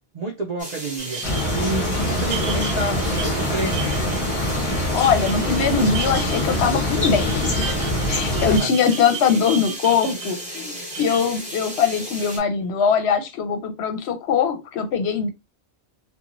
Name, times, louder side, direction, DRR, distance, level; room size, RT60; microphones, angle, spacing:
voice 1, 0.1-4.0 8.5-8.7, right 2 dB, 65° right, 0.4 m, -29 dB
sound 1, 0.6-12.4, equal, 5° right, 0.8 m, -34 dB
sound 2, 1.0-12.7, right 8 dB, 80° right, 0.9 m, -37 dB
sound 3, 1.2-8.6, left 1 dB, 30° left, 0.8 m, -24 dB
voice 2, 4.9-7.7 8.1-15.3, left 6 dB, 70° left, 0.8 m, -21 dB
3.0 x 2.2 x 2.4 m
omnidirectional pair, 1.2 m